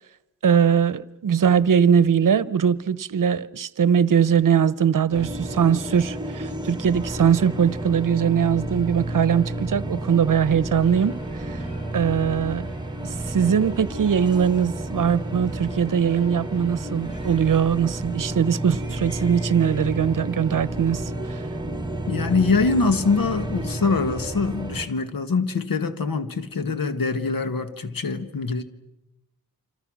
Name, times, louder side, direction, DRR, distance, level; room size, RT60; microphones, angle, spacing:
voice 1, 0.4-11.6 11.9-12.7 13.0-21.4, right 7 dB, 65° right, 0.8 m, -21 dB
sound 1, 5.1-24.9, right 1 dB, 10° right, 1.6 m, -31 dB
sound 2, 10.6-17.7, left 1 dB, 15° left, 6.1 m, -52 dB
voice 2, 22.1-28.6, left 4 dB, 70° left, 1.7 m, -24 dB
27.5 x 26.5 x 6.2 m
wide cardioid pair, 90°, 35 cm